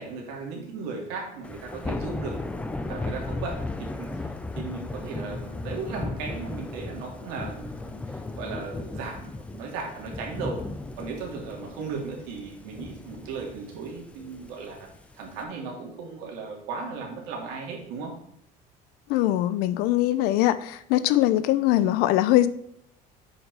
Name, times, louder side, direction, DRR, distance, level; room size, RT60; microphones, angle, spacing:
voice 1, 0.0-2.3 2.8-10.6 11.0-14.9 15.1-18.1, right 4 dB, 85° right, -1 dB, 2.8 m, -36 dB
Thunder / Rain, 1.4-15.4, left 2 dB, 10° left, 0.4 m, -36 dB
voice 2, 19.1-22.5, left 14 dB, 80° left, 15 dB, 0.6 m, -22 dB
8.1 x 5.1 x 4.8 m, 0.73 s
cardioid pair, 165°, 16 cm